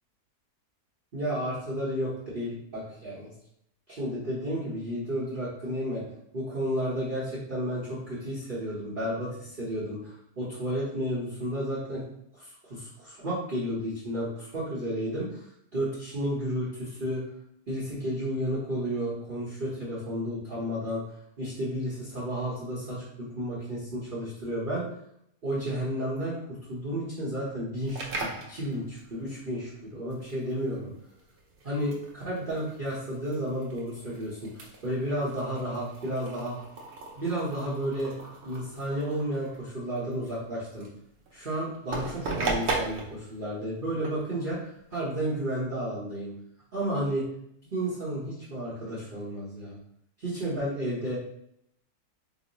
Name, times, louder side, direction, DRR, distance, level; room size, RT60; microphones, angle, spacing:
voice 1, 1.1-3.3 3.9-6.0 6.3-12.0 12.3-15.5 15.7-17.2 17.7-21.0 21.4-24.8 25.4-26.4 26.7-30.9 31.6-36.5 37.1-38.1 38.4-40.9 41.3-46.3 46.7-47.2 47.7-49.8 50.2-51.2, equal, 40° right, -9 dB, 0.8 m, -32 dB
sound 1, 27.8-45.5, right 3 dB, 85° right, 0.5 m, -39 dB
3.0 x 2.0 x 3.9 m, 0.73 s
omnidirectional pair, 1.7 m